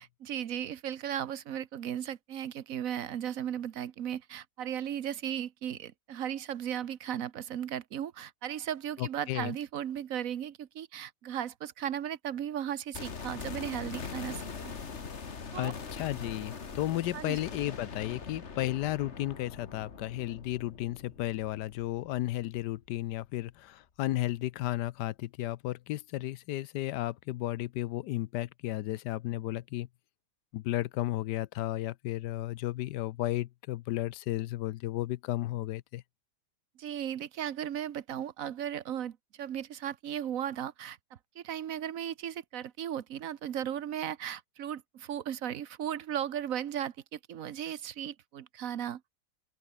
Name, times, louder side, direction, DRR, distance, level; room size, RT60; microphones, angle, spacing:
voice 1, 0.0-14.7 15.5-15.7 17.1-17.4 36.8-41.0 41.4-49.0, right 10 dB, 60° right, 1.2 m, -36 dB
voice 2, 9.0-9.5 15.6-29.9 30.5-36.0, left 15 dB, 85° left, 1.2 m, -33 dB
sound 1, 12.9-22.9 23.2-23.3, left 5 dB, 45° left, 1.9 m, -42 dB
open air
omnidirectional pair, 1.8 m